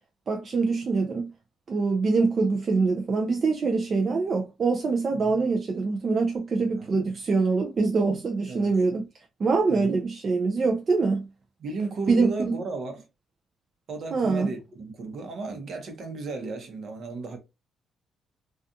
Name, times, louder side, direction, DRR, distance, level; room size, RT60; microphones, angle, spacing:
voice 1, 0.3-1.3 1.7-9.0 9.4-11.3 12.1-12.5 14.1-14.5, right 4 dB, 45° right, 0.4 m, -24 dB
voice 2, 11.6-13.1 13.9-17.4, right 3 dB, 60° right, 0.8 m, -34 dB
2.4 x 2.4 x 2.6 m
cardioid pair, 90°, 0 cm